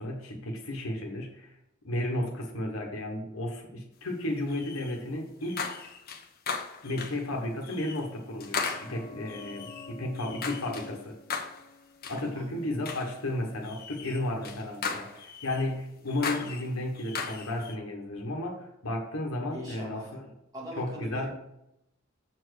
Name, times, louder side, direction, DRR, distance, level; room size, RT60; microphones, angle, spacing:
voice 1, 0.0-1.5 1.8-5.7 6.8-11.2 12.1-20.3 20.8-21.3, left 1 dB, 85° left, 1 dB, 1.4 m, -33 dB
sound 1, 4.5-5.0 5.4-7.3 7.6-8.1 8.4-10.9 11.3-11.7 12.0-12.3 12.8-13.2 13.6-15.7 16.1-17.8, left 5 dB, 50° left, 1.0 m, -37 dB
sound 2, 7.9-13.3 13.6-13.7, left 3 dB, 25° left, 0.4 m, -50 dB
voice 2, 12.3-12.7 19.5-20.1 20.5-21.3, equal, 20° right, -4 dB, 2.8 m, -41 dB
7.4 x 4.5 x 6.5 m, 0.84 s
head